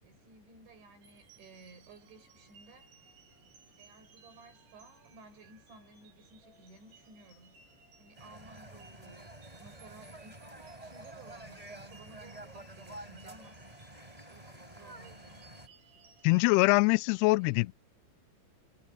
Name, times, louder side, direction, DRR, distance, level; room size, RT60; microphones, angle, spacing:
voice 1, 0.0-2.9 3.8-7.6 8.0-13.6 14.3-15.4 16.5-16.8 17.4-17.7, right 3 dB, 80° right, 8.7 m, -56 dB
sound 1, 1.0-16.6, right 4 dB, 60° right, 8.3 m, -62 dB
sound 2, 8.1-15.7, right 1 dB, 10° right, 5.1 m, -49 dB
voice 2, 16.2-17.7, left 25 dB, 90° left, 2.3 m, -24 dB
omnidirectional pair, 5.2 m